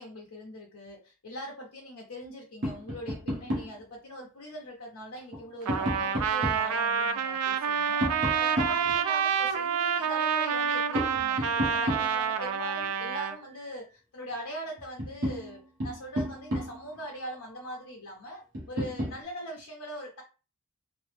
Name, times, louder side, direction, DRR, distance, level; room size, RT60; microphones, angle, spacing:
voice 1, 0.0-18.4 18.7-20.2, equal, 90° left, -2 dB, 0.7 m, -41 dB
Tap, 2.6-3.8 5.2-6.7 8.0-9.4 10.9-12.5 14.3-14.4 14.8-17.0 18.5-19.2, equal, 55° right, 1.1 m, -33 dB
Trumpet, 5.7-13.4, right 7 dB, 90° right, 0.4 m, -28 dB
3.3 x 2.0 x 3.2 m, 0.34 s
head